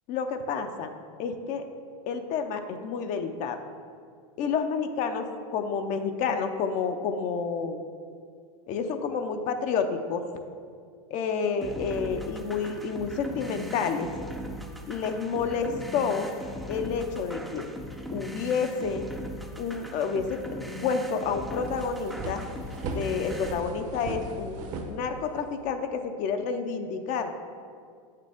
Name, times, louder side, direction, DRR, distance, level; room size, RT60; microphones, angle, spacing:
voice 1, 0.1-0.9 1.2-1.7 2.1-3.6 4.4-7.8 8.7-10.2 11.1-14.1 14.9-16.3 16.7-17.6 18.1-19.1 19.6-20.4 20.8-22.4 22.9-27.3, left 5 dB, 40° left, 7 dB, 0.6 m, -29 dB
sound 1, 11.6-23.6, equal, ahead, 0.6 m, -39 dB
sound 2, 21.4-25.6, right 2 dB, 45° right, 1.0 m, -37 dB
8.3 x 6.6 x 3.5 m, 2.2 s
supercardioid pair, 125°, 19 cm